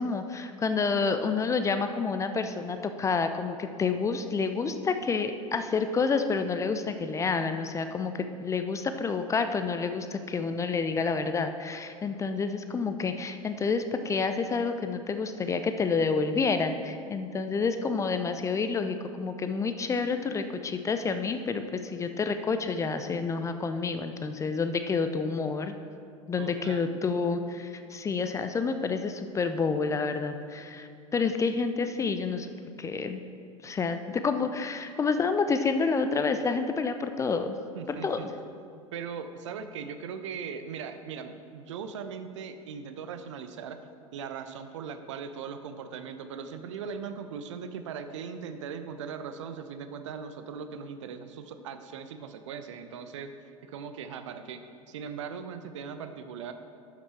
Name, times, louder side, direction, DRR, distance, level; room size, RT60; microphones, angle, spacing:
voice 1, 0.0-25.7 26.3-32.5 32.8-33.2 33.6-37.6 37.9-38.3, left 4 dB, 15° left, 8 dB, 0.5 m, -29 dB
voice 2, 26.4-27.0 37.7-38.3 38.9-43.8 44.1-53.3 53.6-56.5, right 6 dB, 60° right, 9 dB, 0.6 m, -39 dB
12.0 x 6.0 x 4.3 m, 2.3 s
figure-of-eight pair, 80°, 18 cm